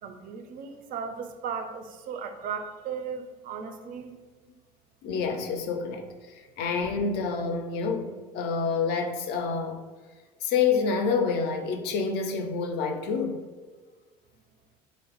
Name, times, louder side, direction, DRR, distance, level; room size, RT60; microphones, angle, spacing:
voice 1, 0.0-4.1, right 6 dB, 45° right, 7 dB, 0.4 m, -36 dB
voice 2, 5.0-6.0 6.6-9.8 10.4-13.4, left 5 dB, 60° left, 4 dB, 0.4 m, -27 dB
3.0 x 2.0 x 2.9 m, 1.4 s
hypercardioid pair, 75°, 19 cm